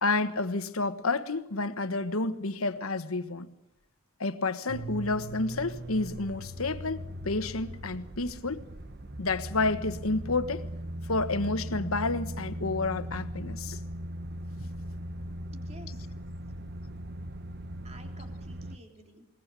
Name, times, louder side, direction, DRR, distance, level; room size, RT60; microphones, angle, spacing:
voice 1, 0.0-3.5 4.2-8.6 9.2-10.6 11.1-13.8 15.9-16.0, left 3 dB, 90° left, 1.4 m, -30 dB
sound 1, 4.7-18.8, right 1 dB, 50° right, 1.1 m, -39 dB
voice 2, 15.5-16.1 17.8-19.3, right 1 dB, 30° right, 3.2 m, -52 dB
21.5 x 19.5 x 8.3 m
head